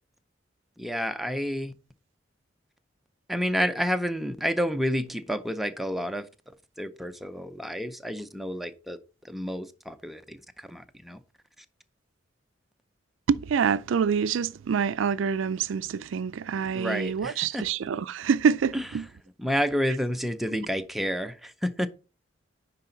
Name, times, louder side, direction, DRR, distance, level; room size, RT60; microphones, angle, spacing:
voice 1, 0.8-1.7 3.3-6.3 6.8-9.0 9.2-11.2 16.7-17.7 18.7-18.9 19.4-21.9, equal, ahead, 0.5 m, -30 dB
voice 2, 13.3-19.1, right 6 dB, 90° right, 0.4 m, -26 dB
10.0 x 4.0 x 3.8 m
head